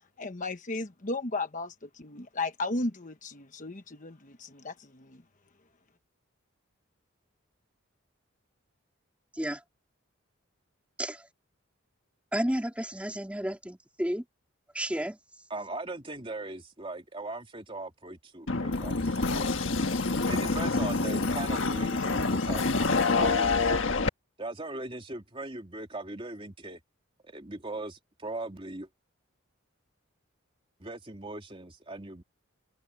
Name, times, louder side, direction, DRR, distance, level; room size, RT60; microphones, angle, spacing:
voice 1, 0.2-1.7 2.0-4.7, left 2 dB, 40° left, 1.2 m, -34 dB
voice 2, 12.3-14.2 14.7-15.2, equal, 5° right, 3.1 m, -31 dB
voice 3, 15.5-19.5 20.2-23.8 24.4-26.8 27.2-28.9 30.8-32.2, right 2 dB, 25° right, 2.7 m, -39 dB
sound 1, 18.5-24.1, left 3 dB, 65° left, 1.6 m, -27 dB
open air
head